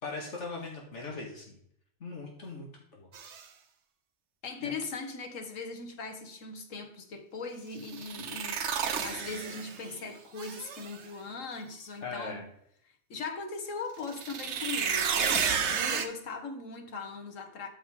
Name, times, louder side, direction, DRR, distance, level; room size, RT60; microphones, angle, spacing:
voice 1, 0.0-1.6 2.0-2.7 2.9-3.1 4.6-4.8 12.0-12.4, left 3 dB, 65° left, 2.1 m, -39 dB
sound 1, 3.1-3.4 7.8-9.9 10.4-11.0 14.0-16.1, right 6 dB, 65° right, 1.1 m, -31 dB
voice 2, 4.4-8.6 9.0-12.5 13.1-17.7, left 4 dB, 85° left, 1.6 m, -39 dB
12.5 x 4.8 x 3.7 m
omnidirectional pair, 1.3 m